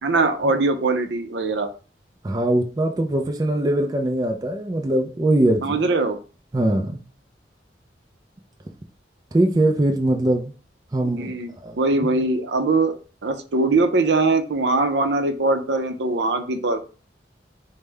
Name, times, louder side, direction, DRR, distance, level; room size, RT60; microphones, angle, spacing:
voice 1, 0.0-1.7 5.6-6.2 11.2-12.9 13.2-16.8, right 3 dB, 75° right, 7 dB, 0.6 m, -21 dB
voice 2, 2.2-5.8 6.5-7.0 9.3-10.5 10.9-11.3 11.6-12.2, right 1 dB, 20° right, 2 dB, 0.4 m, -22 dB
5.2 x 2.1 x 3.3 m, 0.37 s
head